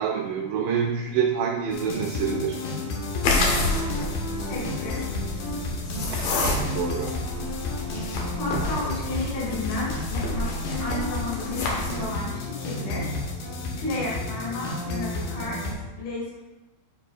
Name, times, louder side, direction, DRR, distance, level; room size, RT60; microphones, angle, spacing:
voice 1, 0.0-2.6 6.1-7.2 8.5-8.6, right 7 dB, 85° right, 1 dB, 2.4 m, -27 dB
sound 1, 1.7-15.7, left 2 dB, 90° left, 1.9 m, -32 dB
sound 2, 3.2-12.0, left 2 dB, 70° left, 2.3 m, -29 dB
voice 2, 4.4-5.1 8.0-13.1 13.4-13.5 13.8-15.6 16.0-16.4, left 2 dB, 55° left, -7 dB, 3.6 m, -32 dB
9.5 x 4.8 x 2.4 m, 1.2 s
omnidirectional pair, 5.3 m